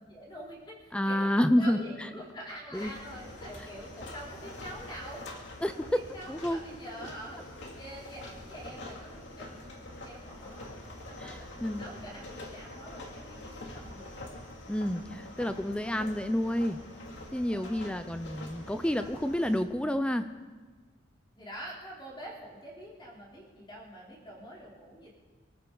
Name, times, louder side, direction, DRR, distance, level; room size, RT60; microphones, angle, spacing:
voice 1, 0.0-5.2 5.7-10.7 11.1-14.2 17.5-18.0 21.4-25.1, equal, 25° left, -4 dB, 3.5 m, -46 dB
voice 2, 0.9-1.8 2.7-2.9 5.6-6.6 11.2-11.9 14.7-16.8 17.3-20.2, equal, 5° left, 10 dB, 0.5 m, -29 dB
sound 1, 2.7-19.6, left 1 dB, 65° left, 2.6 m, -45 dB
24.0 x 14.5 x 3.9 m, 1.3 s
head